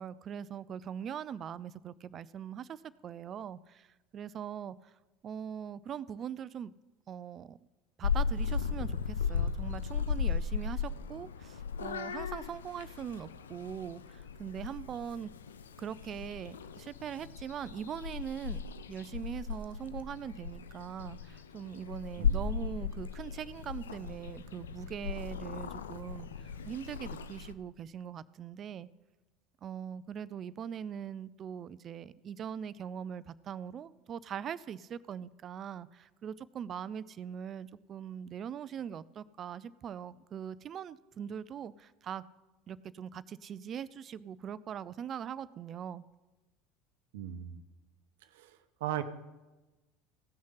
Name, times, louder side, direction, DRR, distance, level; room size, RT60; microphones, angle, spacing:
voice 1, 0.0-3.9 4.1-4.9 5.2-6.7 7.1-7.6 8.0-15.3 15.8-18.6 18.9-28.9 29.6-42.2 42.7-46.0, right 8 dB, 40° right, 18 dB, 0.5 m, -41 dB
Purr / Meow, 8.0-27.5, left 6 dB, 85° left, 0.5 m, -36 dB
voice 2, 22.2-22.5 47.1-47.6 48.3-49.0, right 11 dB, 70° right, 11 dB, 0.8 m, -38 dB
16.5 x 6.3 x 5.7 m, 1.1 s
hypercardioid pair, 75°, 0 cm